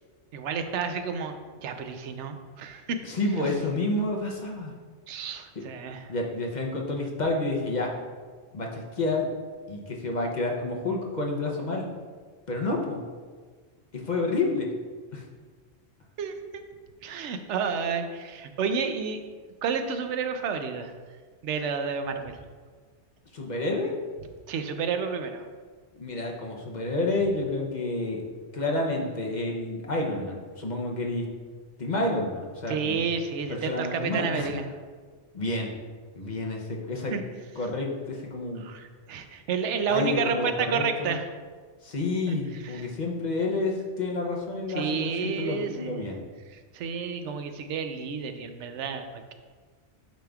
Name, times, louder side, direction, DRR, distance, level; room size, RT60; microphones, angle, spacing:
voice 1, 0.3-3.0 5.1-6.1 16.2-16.6 17.0-19.2 19.6-20.9 21.4-22.4 24.5-25.5 32.7-34.6 37.1-37.2 38.6-41.2 42.3-42.4 42.6-42.9 44.7-46.0 46.5-49.3, right 5 dB, 80° right, 7 dB, 0.9 m, -30 dB
voice 2, 3.0-4.7 6.1-7.9 8.5-9.3 9.7-11.9 12.5-13.0 13.9-14.7 15.1-15.2 23.3-23.9 25.9-28.2 28.5-31.3 31.8-33.1 33.5-34.5 35.3-35.7 36.1-37.2 37.6-38.6 39.9-41.1 41.8-46.2, left 2 dB, 45° left, 0 dB, 0.8 m, -29 dB
9.0 x 5.1 x 2.3 m, 1.5 s
omnidirectional pair, 1.2 m